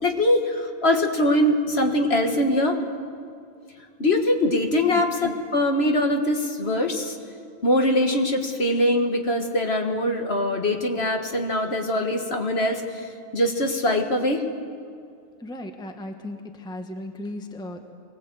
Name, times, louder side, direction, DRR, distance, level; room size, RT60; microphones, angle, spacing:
voice 1, 0.0-2.8 4.0-7.2 7.6-14.4, left 1 dB, 50° left, 3 dB, 1.8 m, -22 dB
voice 2, 15.4-17.9, left 1 dB, 5° left, 5 dB, 1.1 m, -36 dB
23.5 x 18.5 x 8.0 m, 2.3 s
omnidirectional pair, 1.4 m